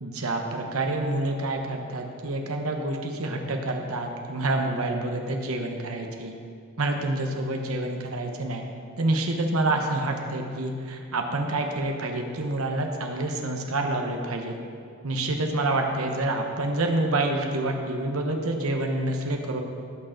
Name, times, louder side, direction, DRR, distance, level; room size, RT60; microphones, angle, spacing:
voice 1, 0.0-6.3 6.8-8.6 9.0-14.5 15.0-19.6, right 2 dB, 90° right, 3 dB, 1.1 m, -27 dB
16.0 x 6.5 x 3.9 m, 2.4 s
head